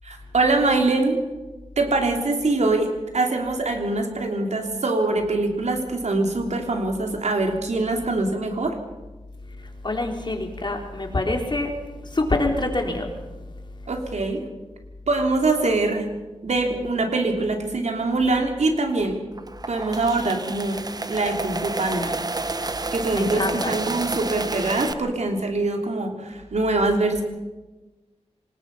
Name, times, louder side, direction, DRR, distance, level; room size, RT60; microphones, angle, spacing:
voice 1, 0.0-1.2 1.8-8.7 13.9-14.4 15.1-16.0 16.4-19.2 19.7-20.8 21.1-22.1 22.9-27.2, right 2 dB, 80° right, 3 dB, 3.4 m, -23 dB
voice 2, 9.8-11.7 12.0-13.1 23.1-23.8, left 2 dB, 40° left, 3 dB, 3.7 m, -25 dB
sound 1, 19.3-24.9, right 3 dB, 35° right, 1.1 m, -30 dB
26.5 x 19.5 x 5.7 m, 1.2 s
wide cardioid pair, 95°, 12 cm